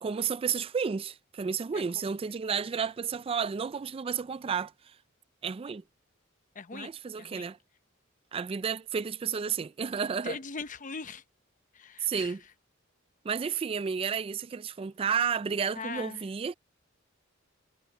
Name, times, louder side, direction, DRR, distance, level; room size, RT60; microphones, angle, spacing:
voice 1, 0.0-4.9 5.4-5.8 6.7-7.6 8.3-10.4 12.0-12.4 13.2-16.5, right 6 dB, 30° right, 0.3 m, -32 dB
voice 2, 6.5-6.9 7.2-7.5 10.2-11.2 11.7-12.3 15.8-16.2, left 4 dB, 40° left, 0.7 m, -40 dB
head